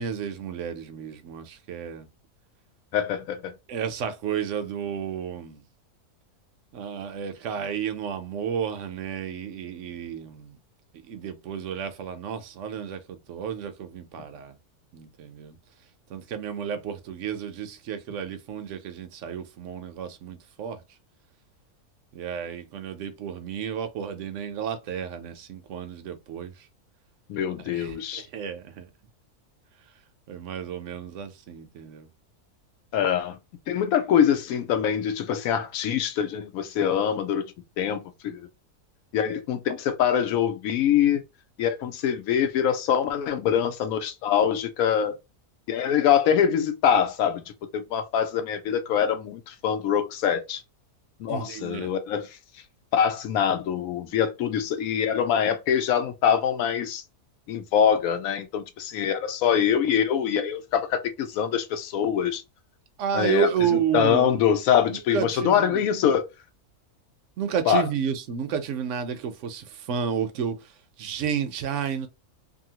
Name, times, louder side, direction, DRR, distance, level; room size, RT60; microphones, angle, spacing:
voice 1, 0.0-2.1 3.7-5.6 6.7-10.6 11.1-14.5 14.9-15.6 16.1-20.8 22.1-26.7 27.7-28.9 30.3-32.1 51.3-51.9 63.0-64.4 64.9-65.9 67.4-72.1, right 8 dB, 70° right, 0.8 m, -31 dB
voice 2, 2.9-3.5 27.3-28.3 32.9-33.4 33.7-37.5 37.8-38.4 39.1-41.2 41.6-45.2 45.7-47.4 47.7-50.6 51.2-52.3 52.9-57.0 57.5-62.4 63.1-66.3 67.7-67.8, left 8 dB, 75° left, 1.0 m, -24 dB
2.7 x 2.6 x 2.8 m
omnidirectional pair, 1.5 m